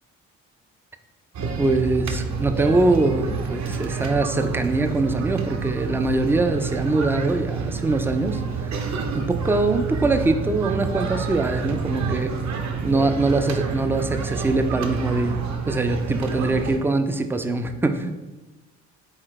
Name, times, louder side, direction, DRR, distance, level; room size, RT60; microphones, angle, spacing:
sound 1, 1.3-16.8, right 5 dB, 50° right, 0.7 m, -28 dB
voice 1, 1.6-8.8 9.1-12.3 12.8-18.2, right 2 dB, 5° right, 7 dB, 0.3 m, -23 dB
4.1 x 3.9 x 3.1 m, 1.1 s
hypercardioid pair, 45°, 37 cm